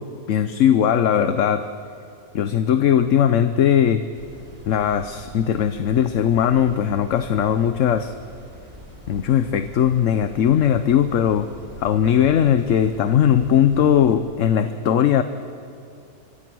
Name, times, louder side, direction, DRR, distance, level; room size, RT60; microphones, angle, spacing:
voice 1, 0.3-1.7 2.3-4.0 4.6-8.1 9.1-11.5 11.8-15.2, left 9 dB, 60° left, 10 dB, 1.0 m, -19 dB
sound 1, 4.1-14.1, right 1 dB, 25° right, 4.0 m, -43 dB
26.0 x 25.0 x 6.2 m, 2.4 s
omnidirectional pair, 1.6 m